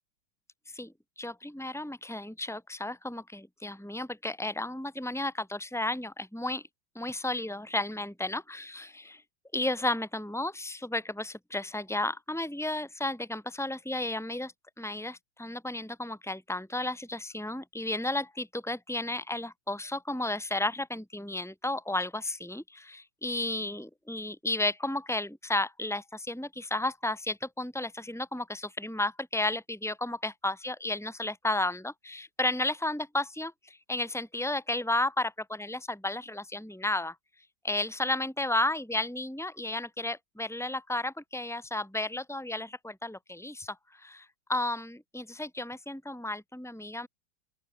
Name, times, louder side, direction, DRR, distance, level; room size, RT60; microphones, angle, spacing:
voice 1, 0.7-6.6 7.0-9.2 9.5-37.2 37.6-47.1, left 2 dB, ahead, 5.8 m, -33 dB
open air
omnidirectional pair, 2.1 m